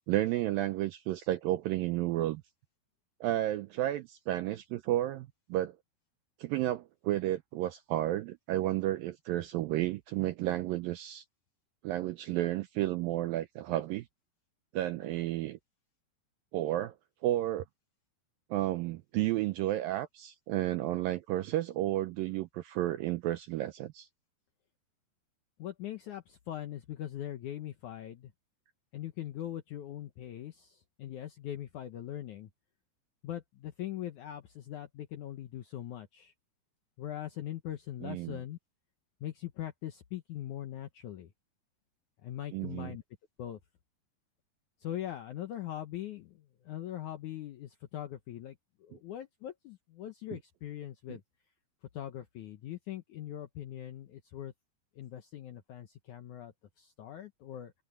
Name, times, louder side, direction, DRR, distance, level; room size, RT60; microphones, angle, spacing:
voice 1, 0.0-2.4 3.2-5.8 6.4-11.2 11.8-14.1 14.7-15.6 16.5-16.9 17.2-17.6 18.5-24.1 38.0-38.4 42.5-42.9, right 14 dB, 80° right, 2.1 m, -32 dB
voice 2, 25.6-28.3 28.9-32.5 33.2-36.3 37.0-38.6 39.2-41.3 42.2-43.0 43.4-43.6 44.8-51.2 51.9-54.5 55.0-57.7, left 12 dB, 75° left, 1.8 m, -41 dB
open air
omnidirectional pair, 4.8 m